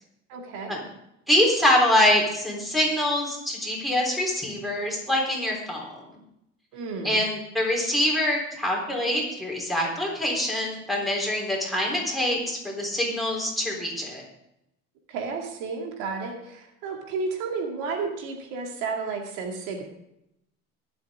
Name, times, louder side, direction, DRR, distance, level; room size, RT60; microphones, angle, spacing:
voice 1, 0.3-0.8 6.7-7.2 15.1-19.8, right 4 dB, 85° right, 1 dB, 2.5 m, -32 dB
voice 2, 1.3-5.8 7.0-14.2, left 1 dB, ahead, -2 dB, 3.7 m, -24 dB
23.5 x 7.8 x 3.7 m, 0.82 s
cardioid pair, 155°, 29 cm